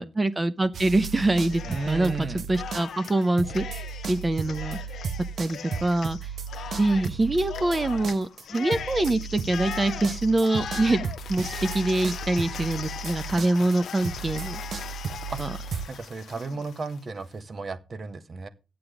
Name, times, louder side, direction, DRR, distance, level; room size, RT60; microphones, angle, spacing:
voice 1, 0.0-3.8 4.1-4.8 5.4-6.3 6.7-14.6 15.4-15.5, right 2 dB, 25° right, 11 dB, 0.8 m, -25 dB
sound 1, 0.7-3.1 3.4-15.9, right 6 dB, 65° right, 1.0 m, -35 dB
Cheering, 1.4-2.2 2.5-17.0, left 8 dB, 75° left, 0.7 m, -39 dB
voice 2, 1.6-2.5 15.3-15.4 15.9-18.5, right 4 dB, 50° right, 12 dB, 1.4 m, -34 dB
11.5 x 8.6 x 4.9 m, 0.29 s
cardioid pair, 70°, 0 cm